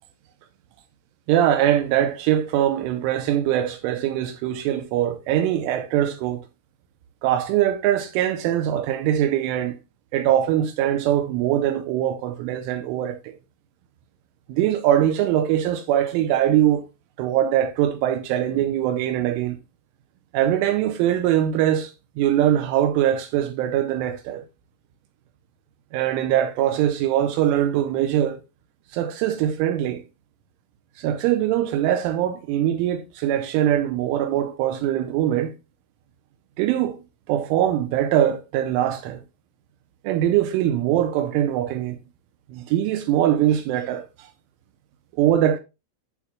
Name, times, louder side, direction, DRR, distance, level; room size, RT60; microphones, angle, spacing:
voice 1, 1.3-6.5 7.2-9.8 10.1-13.4 14.5-16.9 17.2-19.6 20.3-24.4 25.9-28.4 28.9-30.0 31.0-35.5 36.6-39.2 40.0-42.0 42.5-44.3 45.2-45.6, right 11 dB, 85° right, 3.1 m, -22 dB
10.5 x 7.3 x 2.3 m
omnidirectional pair, 5.8 m